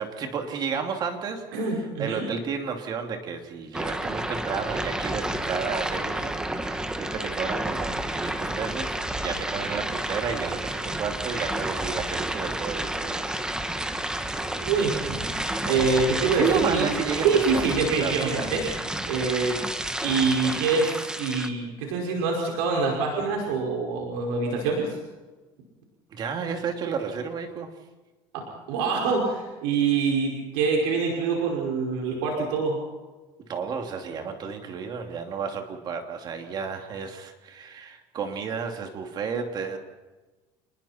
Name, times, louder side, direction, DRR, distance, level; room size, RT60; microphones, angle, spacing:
voice 1, 0.0-1.5 2.0-13.2 15.5-15.8 16.3-17.3 17.5-17.7 18.0-18.5 26.1-27.7 33.5-39.8, right 6 dB, 40° right, 5 dB, 2.7 m, -32 dB
voice 2, 1.5-2.2 14.4-15.2 15.6-16.9 17.2-18.7 19.1-19.6 20.0-25.0 28.3-32.8, right 4 dB, 90° right, -1 dB, 5.4 m, -25 dB
sound 1, 3.7-21.5, right 1 dB, 5° right, 1.3 m, -30 dB
29.0 x 20.5 x 4.4 m, 1.2 s
cardioid pair, 140°, 11 cm